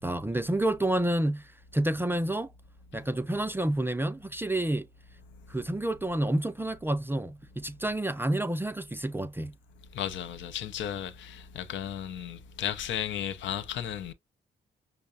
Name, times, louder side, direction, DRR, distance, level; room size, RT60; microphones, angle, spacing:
voice 1, 0.0-2.5 2.9-4.8 5.5-9.5, right 1 dB, 10° right, 0.4 m, -29 dB
voice 2, 9.9-14.1, left 10 dB, 70° left, 0.5 m, -34 dB
5.5 x 2.0 x 2.4 m
cardioid pair, 90°, 20 cm